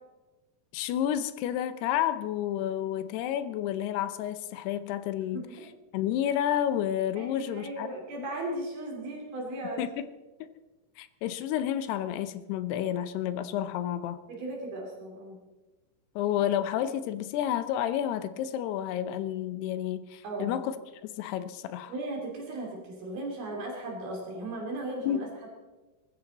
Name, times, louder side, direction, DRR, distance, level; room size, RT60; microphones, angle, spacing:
voice 1, 0.7-5.4 5.9-7.9 8.2-8.3 9.8-10.0 10.4-10.5 11.0-14.2 16.2-20.8 21.1-21.9 25.1-25.3, left 10 dB, 80° left, 13 dB, 2.7 m, -30 dB
voice 2, 5.3-5.7 7.2-10.0 14.3-15.4 20.2-20.6 21.9-25.5, right 1 dB, 60° right, -1 dB, 4.1 m, -37 dB
21.0 x 14.5 x 4.1 m, 1.2 s
omnidirectional pair, 4.9 m